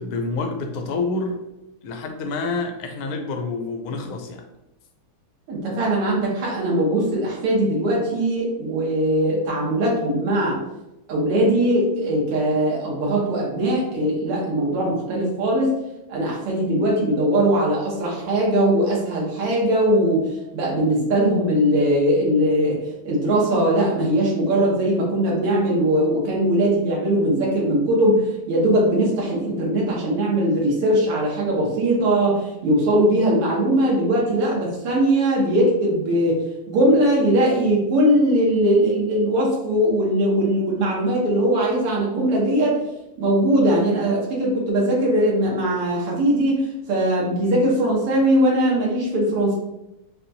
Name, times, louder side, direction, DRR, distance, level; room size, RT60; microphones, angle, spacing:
voice 1, 0.0-1.4 1.8-4.4, left 3 dB, 75° left, 4 dB, 1.4 m, -28 dB
voice 2, 5.5-10.6 11.1-15.8 16.1-22.8 23.0-42.8 43.2-49.5, right 1 dB, 90° right, -3 dB, 1.9 m, -20 dB
5.5 x 2.3 x 2.6 m, 0.94 s
omnidirectional pair, 2.4 m